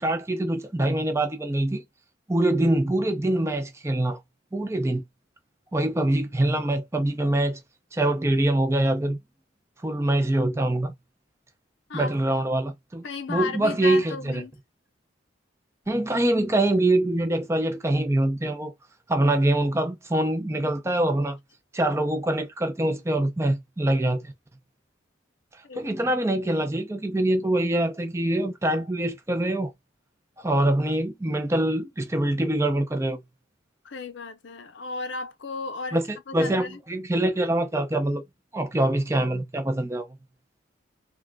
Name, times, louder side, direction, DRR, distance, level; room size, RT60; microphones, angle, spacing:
voice 1, 0.0-1.8 2.3-4.2 4.5-5.0 5.7-7.6 7.9-9.2 9.8-10.9 11.9-14.4 15.9-18.7 19.1-21.4 21.7-24.3 25.8-29.7 30.4-33.2 35.9-38.2 38.5-40.1, right 1 dB, 15° right, 0.4 m, -24 dB
voice 2, 13.0-14.5 25.6-25.9 33.8-36.0 36.3-36.8, left 4 dB, 65° left, 0.5 m, -34 dB
3.6 x 2.2 x 2.2 m
head